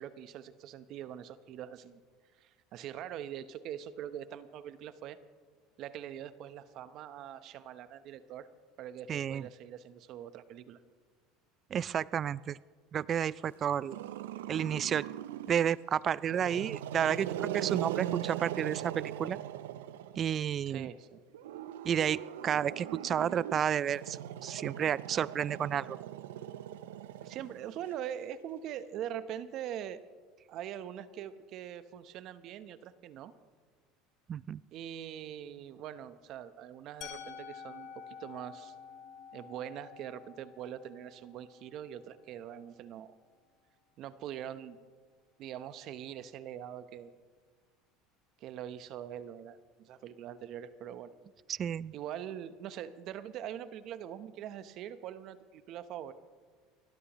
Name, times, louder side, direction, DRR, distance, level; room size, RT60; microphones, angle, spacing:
voice 1, 0.0-2.0 2.4-5.2 5.8-8.5 8.8-10.8 20.7-21.2 27.2-30.0 30.5-33.3 34.7-38.7 39.3-43.1 44.0-44.8 45.4-47.1 48.4-51.1 51.9-56.1, right 10 dB, 55° right, 13 dB, 0.9 m, -43 dB
voice 2, 9.1-9.5 11.7-12.6 12.9-14.0 14.5-15.1 15.5-19.4 20.2-20.9 21.8-26.0 34.3-34.6 51.5-51.9, right 9 dB, 40° right, 21 dB, 0.3 m, -31 dB
Growling, 13.9-15.7 16.2-20.4 21.3-27.9, right 11 dB, 85° right, 0.6 m, -40 dB
Musical instrument, 37.0-42.9, left 7 dB, 60° left, 2.1 m, -50 dB
29.5 x 12.5 x 3.1 m, 1.5 s
supercardioid pair, 95°, 0 cm